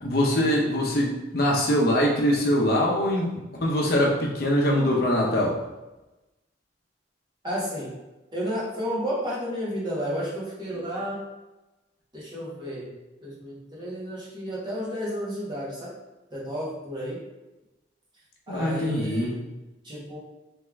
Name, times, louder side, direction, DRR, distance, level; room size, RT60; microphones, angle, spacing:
voice 1, 0.0-3.3 3.6-5.6 18.5-19.4, equal, 55° left, -2 dB, 0.8 m, -23 dB
voice 2, 7.4-8.0 8.3-11.2 12.1-12.9 13.2-15.9 16.3-17.2 18.5-19.3 19.8-20.2, equal, 25° right, -7 dB, 1.2 m, -32 dB
3.5 x 3.2 x 3.5 m, 1.0 s
head